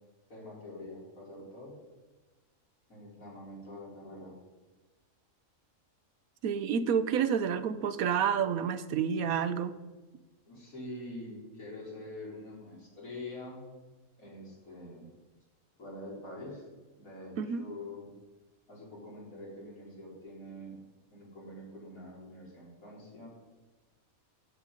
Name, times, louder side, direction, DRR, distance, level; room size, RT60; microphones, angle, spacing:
voice 1, 0.3-1.8 2.9-4.3 10.5-13.7 14.2-15.1 15.8-16.7 17.0-18.1 18.7-20.8 21.1-23.3, left 1 dB, 75° left, -4 dB, 4.3 m, -45 dB
voice 2, 6.4-9.7 17.4-17.6, right 7 dB, 80° right, 12 dB, 1.2 m, -29 dB
13.0 x 7.7 x 5.0 m, 1.2 s
omnidirectional pair, 1.5 m